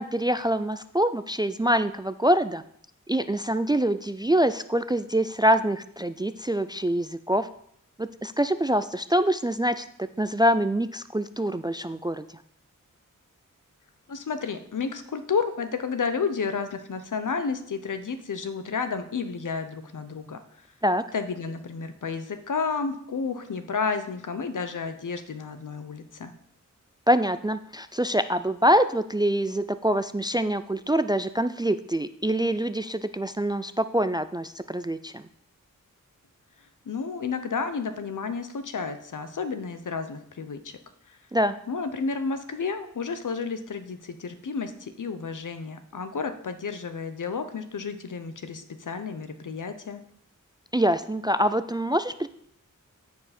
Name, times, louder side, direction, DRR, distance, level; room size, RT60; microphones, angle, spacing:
voice 1, 0.0-2.6 3.1-7.5 8.0-12.3 20.8-21.0 27.1-35.3 41.3-41.6 50.7-52.3, right 1 dB, 15° right, 12 dB, 0.3 m, -25 dB
voice 2, 14.1-20.4 21.1-26.3 36.9-40.8 41.1-41.2 41.7-50.0, left 5 dB, 70° left, 9 dB, 0.9 m, -31 dB
14.0 x 4.8 x 4.3 m, 0.69 s
wide cardioid pair, 75°, 32 cm